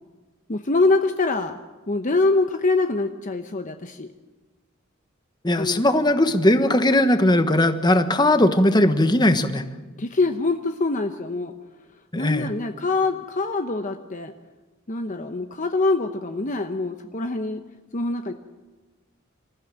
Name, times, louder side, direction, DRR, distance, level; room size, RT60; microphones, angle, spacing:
voice 1, 0.5-1.5 1.9-4.1 5.5-5.8 10.0-11.5 12.2-14.3 14.9-17.6 17.9-18.3, left 3 dB, 40° left, 7 dB, 0.9 m, -24 dB
voice 2, 5.4-9.6 12.1-12.5, left 1 dB, 20° left, 9 dB, 1.3 m, -19 dB
26.5 x 15.0 x 9.0 m, 1.2 s
head